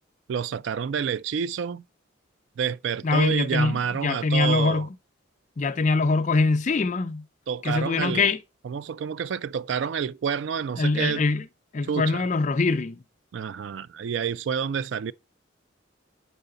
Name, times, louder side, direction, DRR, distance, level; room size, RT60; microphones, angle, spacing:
voice 1, 0.3-1.8 2.6-4.9 7.5-8.3 8.6-11.2 11.9-12.2 13.3-15.1, right 7 dB, 65° right, 0.3 m, -28 dB
voice 2, 3.0-4.9 5.6-7.3 7.6-8.4 10.8-11.4 11.7-13.0, left 3 dB, 35° left, 0.4 m, -23 dB
6.8 x 4.7 x 3.7 m
head